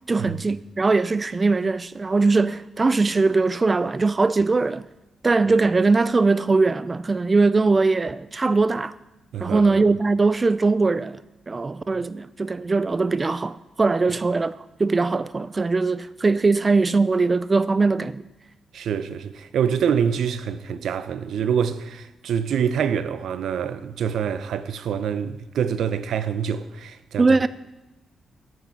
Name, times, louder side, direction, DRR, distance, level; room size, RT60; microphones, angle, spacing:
voice 1, 0.1-4.8 5.2-8.9 9.4-11.2 11.5-18.2 27.2-27.5, right 3 dB, 30° right, 0.3 m, -21 dB
voice 2, 9.3-9.9 11.9-12.0 14.1-14.2 18.7-27.4, right 8 dB, 80° right, 0.7 m, -26 dB
13.0 x 9.0 x 6.0 m
cardioid pair, 95°, 0 cm